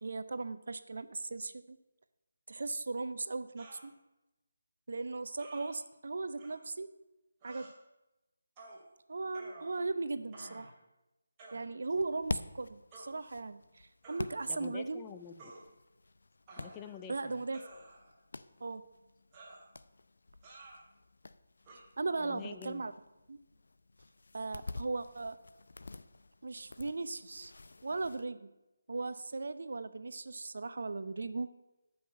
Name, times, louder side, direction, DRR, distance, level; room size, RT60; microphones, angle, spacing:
voice 1, 0.0-1.8 2.5-3.9 4.9-6.9 7.4-7.7 9.1-10.7 11.5-15.0 17.1-17.6 18.6-18.8 22.0-22.9 23.3-23.4 24.3-25.4 26.4-27.5 27.8-28.5 28.9-31.5, right 3 dB, 65° right, 12 dB, 0.7 m, -37 dB
sound 1, 3.6-3.9 5.4-5.7 6.4-6.5 7.4-7.7 8.6-8.8 9.3-10.0 10.3-10.8 11.4-11.6 12.9-13.1 14.0-14.3 15.4-15.6 16.5-17.0 17.5-18.2 19.3-19.7 20.4-20.8 21.6-21.8, right 2 dB, 20° right, 2.5 m, -52 dB
sound 2, 11.8-28.2, left 3 dB, 70° left, 0.6 m, -48 dB
voice 2, 14.5-15.5 16.6-17.4 22.2-22.8, left 7 dB, 15° left, 7 dB, 0.5 m, -47 dB
13.0 x 5.8 x 6.3 m, 0.96 s
figure-of-eight pair, 160°, 0 cm